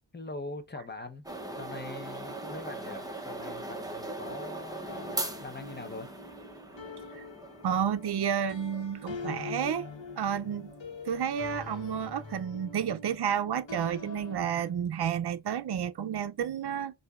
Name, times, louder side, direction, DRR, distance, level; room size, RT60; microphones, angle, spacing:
voice 1, 0.1-1.2 1.5-6.1, left 2 dB, 25° left, 0.8 m, -42 dB
sound 1, 1.2-12.3, right 2 dB, 10° right, 0.7 m, -41 dB
sound 2, 4.9-14.7, left 4 dB, 70° left, 1.3 m, -44 dB
voice 2, 7.6-9.9 10.2-10.7 11.1-17.0, right 8 dB, 60° right, 0.6 m, -31 dB
6.3 x 2.7 x 2.4 m
wide cardioid pair, 105°, 46 cm